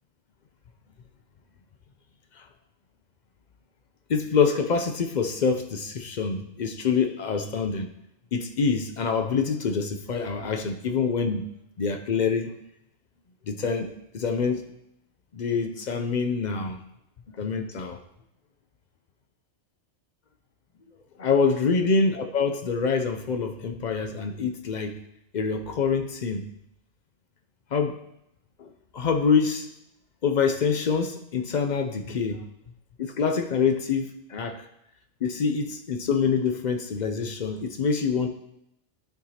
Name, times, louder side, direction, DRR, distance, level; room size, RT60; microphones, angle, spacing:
voice 1, 4.1-7.9 8.3-11.4 11.8-12.6 13.5-14.6 15.3-16.8 17.4-18.0 21.2-25.0 25.3-26.5 27.7-28.0 28.6-29.7 30.2-32.4 33.0-34.6 35.2-38.3, left 5 dB, 55° left, 7 dB, 0.5 m, -26 dB
12.0 x 4.6 x 2.8 m, 0.80 s
omnidirectional pair, 1.2 m